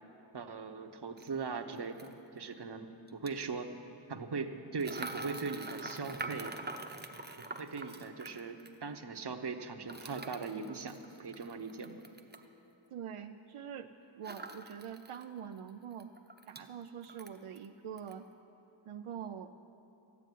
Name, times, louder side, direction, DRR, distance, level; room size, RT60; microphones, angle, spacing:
voice 1, 0.3-3.7 4.1-6.5 7.6-12.0, right 4 dB, 55° right, 6 dB, 1.0 m, -40 dB
sound 1, 1.2-1.3 2.0-2.1 3.1-3.3 4.8-8.8 9.9-12.5 14.2-15.2 15.6-15.7 16.0-16.7 17.0-17.7 18.0-18.2, right 2 dB, 20° right, 0.8 m, -45 dB
voice 2, 12.9-16.1 16.5-18.3 18.9-19.5, right 8 dB, 85° right, 7 dB, 0.6 m, -44 dB
13.5 x 9.7 x 9.2 m, 2.9 s
wide cardioid pair, 90°, 49 cm